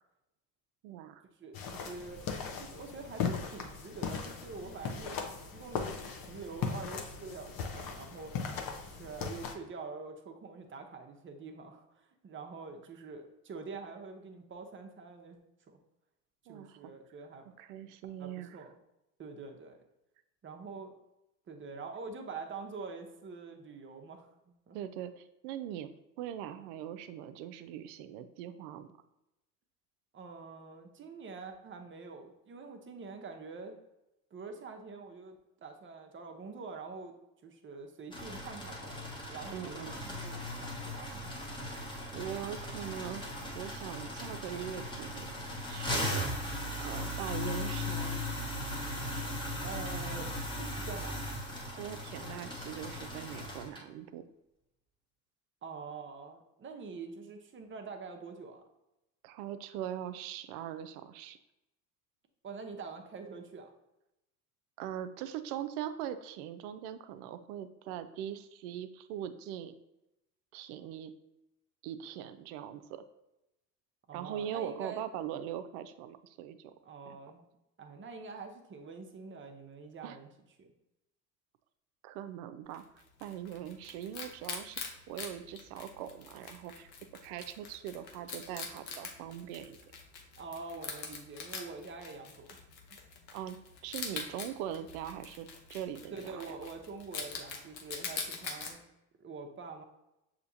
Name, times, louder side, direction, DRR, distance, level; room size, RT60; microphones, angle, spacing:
voice 1, 0.8-1.2 16.5-16.8 17.6-18.6 24.7-25.9 26.2-28.9 39.5-40.0 42.1-45.3 45.7-46.3 46.8-48.2 51.7-54.3 59.2-61.4 64.8-69.7 70.5-71.1 71.8-73.0 74.1-76.7 77.1-77.2 80.0-80.2 82.0-84.8 85.1-86.9 87.2-89.9 93.3-96.4, right 10 dB, 65° right, 11 dB, 0.6 m, -41 dB
voice 2, 1.4-5.2 5.5-8.4 8.8-15.4 15.7-15.8 16.5-17.5 18.2-18.7 19.2-19.8 20.4-20.9 21.5-24.8 30.1-33.8 34.3-35.4 35.6-37.1 37.4-41.2 49.6-50.3 50.6-51.3 55.6-58.6 62.4-63.7 74.1-75.0 76.8-77.4 77.8-80.3 80.6-80.7 90.4-92.6 96.1-98.9 99.2-99.8, right 4 dB, 25° right, 4 dB, 0.7 m, -45 dB
sound 1, 1.5-9.5, left 6 dB, 45° left, 0.8 m, -38 dB
sound 2, 38.1-53.8, left 1 dB, 10° left, 1.0 m, -38 dB
Wild animals, 82.7-98.7, left 5 dB, 90° left, 0.8 m, -44 dB
6.7 x 2.9 x 2.6 m, 0.91 s
hypercardioid pair, 75°, 48 cm